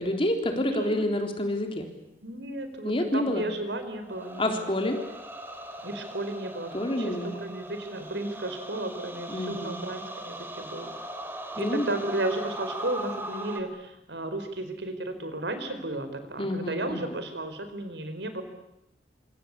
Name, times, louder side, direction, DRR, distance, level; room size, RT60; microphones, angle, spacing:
voice 1, 0.0-1.9 2.8-3.4 4.4-5.0 6.7-7.3 9.3-9.8 11.6-12.0 16.4-17.2, left 1 dB, 30° left, 4 dB, 3.9 m, -28 dB
voice 2, 0.5-1.1 2.2-4.8 5.8-10.9 11.5-18.4, right 1 dB, 75° right, 9 dB, 4.6 m, -34 dB
sound 1, 4.0-13.6, right 1 dB, 15° right, 2.9 m, -40 dB
26.5 x 26.5 x 8.4 m, 0.86 s
head